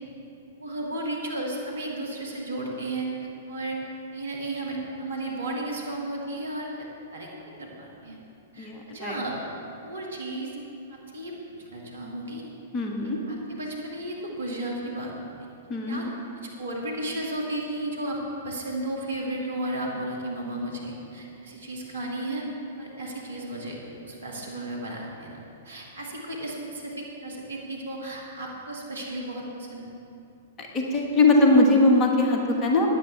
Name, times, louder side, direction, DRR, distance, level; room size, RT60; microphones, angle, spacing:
voice 1, 0.6-3.1 3.5-3.8 4.1-6.9 7.1-7.3 7.6-8.2 8.5-9.3 9.8-10.5 10.9-11.3 11.6-12.4 13.0-15.3 15.9-16.1 16.4-18.2 18.4-22.4 22.8-23.8 24.0-25.4 25.6-29.8, right 1 dB, 70° right, -1 dB, 2.3 m, -34 dB
voice 2, 8.6-9.2 12.7-13.2 15.7-16.1 30.6-32.9, left 2 dB, 25° left, 0 dB, 1.6 m, -21 dB
16.0 x 10.0 x 3.5 m, 2.9 s
figure-of-eight pair, 105°, 0 cm